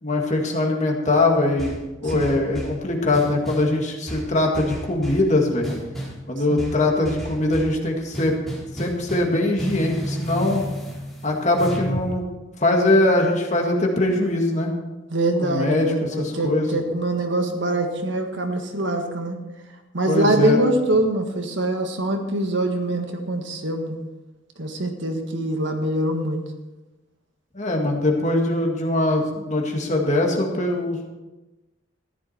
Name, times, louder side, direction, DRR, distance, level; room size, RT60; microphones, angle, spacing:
voice 1, 0.0-1.8 2.0-5.7 6.3-8.3 8.7-10.6 11.2-12.3 12.6-14.7 15.4-15.9 16.2-16.8 20.1-20.6 27.5-31.1, left 2 dB, 35° left, 1 dB, 2.0 m, -22 dB
sound 1, 1.6-2.8 3.1-3.7 4.1-5.3 5.6-6.2 6.6-7.8 8.1-12.1, equal, ahead, 4.6 m, -32 dB
voice 2, 15.1-19.4 19.9-24.0 24.6-26.4, right 1 dB, 60° right, 4 dB, 1.7 m, -24 dB
14.0 x 11.0 x 4.4 m, 1.1 s
head